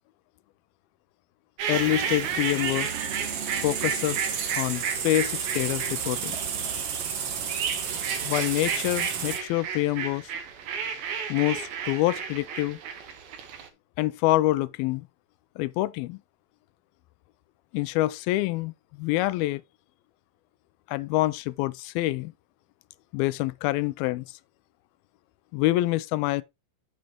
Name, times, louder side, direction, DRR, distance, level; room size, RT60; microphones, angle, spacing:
sound 1, 1.6-13.7, right 7 dB, 70° right, 3.2 m, -33 dB
voice 1, 1.7-2.9 3.6-4.3 4.6-6.4 8.2-10.3 11.3-12.8 14.0-15.1 15.6-16.2 17.7-19.6 20.9-22.3 23.1-24.3 25.5-26.4, left 17 dB, 80° left, 2.4 m, -26 dB
sound 2, 1.7-9.4, right 7 dB, 50° right, 2.1 m, -32 dB
9.3 x 7.7 x 3.0 m
omnidirectional pair, 4.4 m